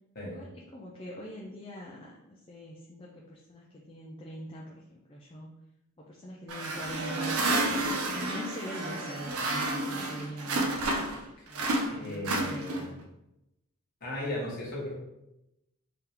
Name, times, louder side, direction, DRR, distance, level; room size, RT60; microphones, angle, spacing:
voice 1, 0.2-5.5 6.0-7.4 7.7-10.8 11.5-12.9, equal, 25° left, -3 dB, 0.4 m, -43 dB
sound 1, 6.5-11.2 11.5-13.0, right 2 dB, 80° right, 0.6 m, -30 dB
voice 2, 11.9-12.9 14.0-14.9, left 1 dB, 40° left, -5 dB, 1.2 m, -36 dB
3.8 x 2.8 x 3.4 m, 0.89 s
head